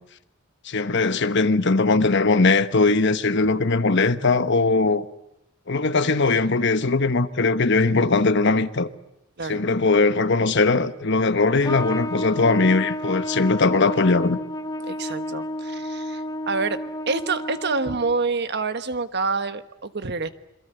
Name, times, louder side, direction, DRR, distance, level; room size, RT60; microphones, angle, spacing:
voice 1, 0.6-5.0 5.7-8.9 9.5-14.4, left 3 dB, 60° left, 1.2 m, -20 dB
Trumpet, 11.6-18.2, left 1 dB, 20° left, 1.1 m, -31 dB
voice 2, 14.9-16.8 17.1-20.3, right 4 dB, 55° right, 1.3 m, -27 dB
27.5 x 23.0 x 8.0 m
head